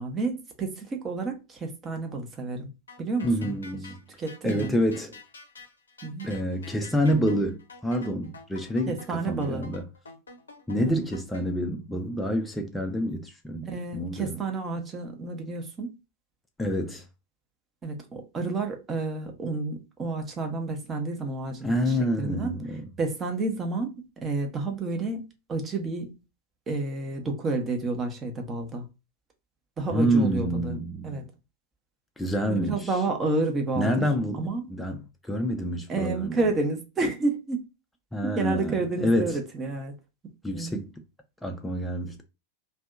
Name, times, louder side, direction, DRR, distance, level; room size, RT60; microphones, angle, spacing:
voice 1, 0.0-2.7 3.0-3.5 4.2-4.7 6.0-6.3 8.9-9.6 10.8-11.0 13.6-15.9 17.8-22.5 23.0-26.2 26.7-28.8 29.8-30.8 31.0-31.3 32.5-34.1 34.3-34.6 35.9-37.6 38.2-39.9 40.5-40.9, right 3 dB, 20° right, 0.7 m, -30 dB
sound 1, 2.9-11.4, left 3 dB, 70° left, 0.5 m, -48 dB
voice 2, 3.2-4.0 4.4-5.1 6.2-9.8 10.7-14.4 16.6-17.0 21.6-22.9 29.9-31.3 32.2-32.9 33.8-36.4 38.1-39.4 40.4-40.9 41.4-42.2, equal, 5° left, 0.4 m, -27 dB
2.6 x 2.2 x 2.4 m
figure-of-eight pair, 90°, 0 cm